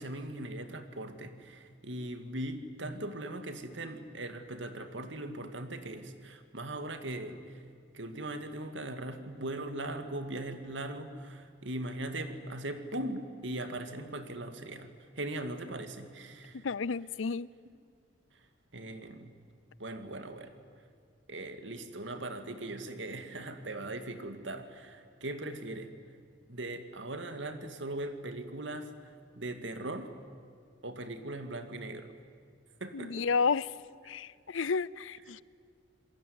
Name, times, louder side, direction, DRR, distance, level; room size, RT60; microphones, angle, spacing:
voice 1, 0.0-7.4 7.9-14.9 15.2-16.6 18.7-19.3 19.8-20.5 21.3-25.9 26.5-28.9 29.4-30.1 30.8-32.1 32.8-33.3, right 1 dB, 70° right, 8 dB, 2.3 m, -39 dB
voice 2, 16.6-17.5 32.9-33.7 34.1-35.4, left 5 dB, 85° left, 21 dB, 0.6 m, -31 dB
27.5 x 21.0 x 9.6 m, 2.2 s
head